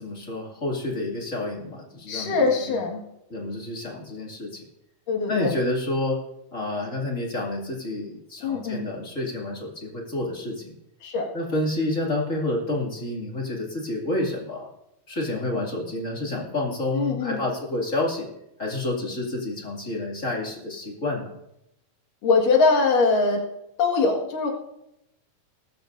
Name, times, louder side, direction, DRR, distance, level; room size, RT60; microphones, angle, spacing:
voice 1, 0.0-2.8 3.3-4.6 5.3-6.2 6.5-10.7 11.3-14.7 15.1-18.3 18.6-21.3, left 2 dB, 25° left, -2 dB, 2.3 m, -29 dB
voice 2, 2.1-3.0 5.1-5.5 8.4-8.8 11.0-11.3 16.9-17.4 22.2-23.4 23.8-24.5, left 4 dB, 65° left, 1 dB, 3.3 m, -22 dB
19.5 x 13.5 x 2.7 m, 0.84 s
omnidirectional pair, 4.2 m